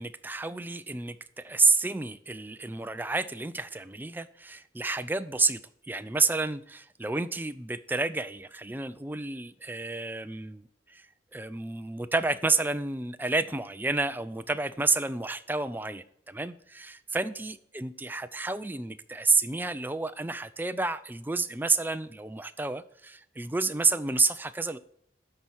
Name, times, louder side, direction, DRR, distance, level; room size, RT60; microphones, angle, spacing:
voice 1, 0.0-5.6 5.9-11.1 11.3-24.8, right 3 dB, 10° right, 11 dB, 0.4 m, -30 dB
12.5 x 4.4 x 6.3 m, 0.71 s
head